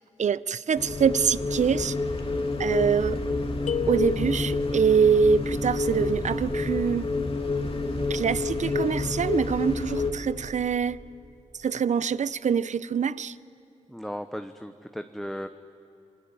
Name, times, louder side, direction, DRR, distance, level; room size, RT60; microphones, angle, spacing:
voice 1, 0.2-2.0 2.6-3.2 3.9-7.1 8.1-11.0 11.6-13.4, right 7 dB, 70° right, 0.6 m, -24 dB
sound 1, 0.8-10.1, left 3 dB, 50° left, 3.0 m, -28 dB
sound 2, 3.7-4.8, left 8 dB, 75° left, 0.6 m, -33 dB
voice 2, 13.9-15.5, equal, ahead, 1.0 m, -36 dB
27.5 x 21.0 x 9.0 m
cardioid pair, 65°, 13 cm